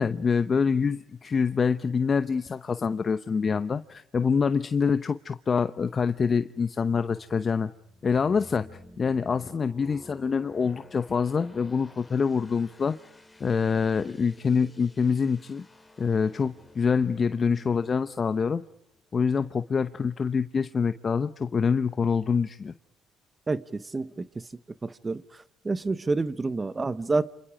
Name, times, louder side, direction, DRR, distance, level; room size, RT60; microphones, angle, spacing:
voice 1, 0.0-7.7 8.0-8.7 9.0-13.0 13.4-15.6 16.0-18.6 19.1-22.7, left 5 dB, 40° left, 0.9 m, -25 dB
sound 1, 7.7-19.4, left 1 dB, 15° left, 4.9 m, -53 dB
voice 2, 23.5-24.3 24.8-25.2 25.6-27.3, right 3 dB, 25° right, 1.1 m, -28 dB
29.0 x 26.5 x 4.9 m
supercardioid pair, 70°, 0 cm